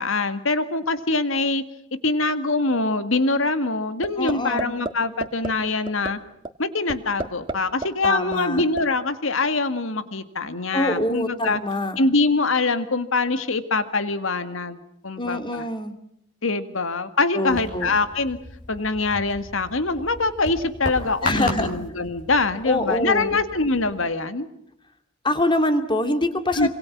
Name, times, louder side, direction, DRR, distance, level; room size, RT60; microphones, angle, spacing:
voice 1, 0.0-1.6 2.0-6.2 6.6-11.6 12.0-14.8 15.0-15.6 16.4-18.4 18.7-24.5 26.5-26.7, left 3 dB, 70° left, 11 dB, 2.0 m, -24 dB
sound 1, 4.0-4.3 4.6-4.9 5.2-5.5 5.9-6.1 6.4-6.5 6.9-7.5 7.8-8.8, right 2 dB, 25° right, 1.7 m, -28 dB
voice 2, 4.2-4.8 8.0-8.6 10.7-12.0 15.2-15.9 17.3-17.9 21.2-21.7 22.6-23.4 25.2-26.7, left 1 dB, 25° left, 8 dB, 2.5 m, -24 dB
sound 2, 17.5-24.0, left 2 dB, 40° left, 6.8 m, -36 dB
27.0 x 26.5 x 6.1 m, 0.75 s
head